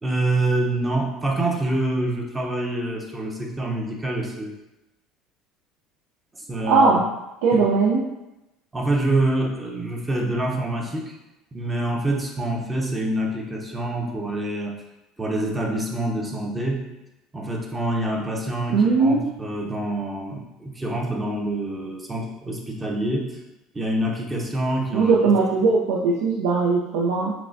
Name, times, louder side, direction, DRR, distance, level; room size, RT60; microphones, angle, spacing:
voice 1, 0.0-4.6 6.3-7.0 7.5-7.6 8.7-11.1 11.5-14.8 15.2-16.9 17.3-23.4 23.7-25.3, right 1 dB, 15° right, 0 dB, 0.7 m, -26 dB
voice 2, 6.7-7.0 7.4-8.0 18.7-19.2 24.9-27.3, right 4 dB, 90° right, -5 dB, 0.5 m, -19 dB
5.8 x 2.2 x 2.5 m, 0.95 s
supercardioid pair, 115°, 0 cm